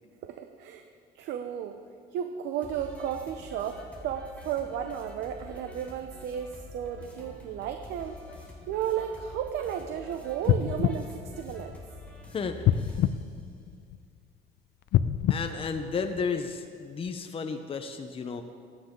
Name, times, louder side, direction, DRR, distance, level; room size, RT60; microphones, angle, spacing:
voice 1, 0.2-0.8 1.1-1.8 2.1-11.7, right 9 dB, 80° right, 6 dB, 0.9 m, -34 dB
sound 1, 2.6-13.2, left 1 dB, 10° left, 3.7 m, -47 dB
sound 2, 10.4-12.1 12.6-14.2 14.8-16.5 17.1-17.2, left 11 dB, 70° left, 0.6 m, -28 dB
voice 2, 12.3-13.0 15.3-18.4, left 5 dB, 35° left, 6 dB, 0.9 m, -33 dB
25.0 x 9.6 x 3.9 m, 2.2 s
cardioid pair, 110°, 17 cm